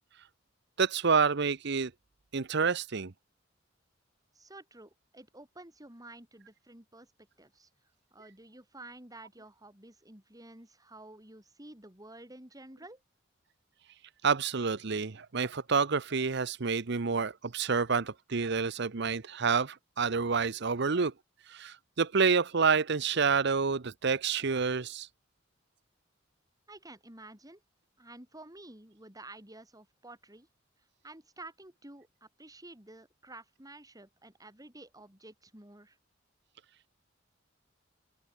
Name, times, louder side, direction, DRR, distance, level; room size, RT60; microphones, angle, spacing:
voice 1, 0.8-1.9 2.3-3.1 14.2-21.1 21.5-25.1, right 5 dB, 65° right, 0.8 m, -28 dB
voice 2, 4.3-7.1 7.4-7.7 8.1-13.0 26.7-27.6 28.0-30.5 31.0-36.0, right 2 dB, 20° right, 6.6 m, -51 dB
open air
head